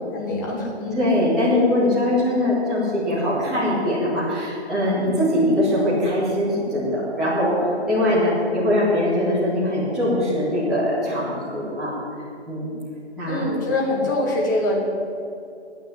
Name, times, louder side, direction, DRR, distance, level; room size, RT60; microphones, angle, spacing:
voice 1, 0.1-1.0 13.3-14.7, left 2 dB, 15° left, -1 dB, 1.6 m, -24 dB
voice 2, 0.9-11.9 12.5-12.7 13.2-13.4, left 1 dB, ahead, -12 dB, 2.1 m, -22 dB
10.5 x 8.9 x 9.0 m, 2.5 s
hypercardioid pair, 170°, 34 cm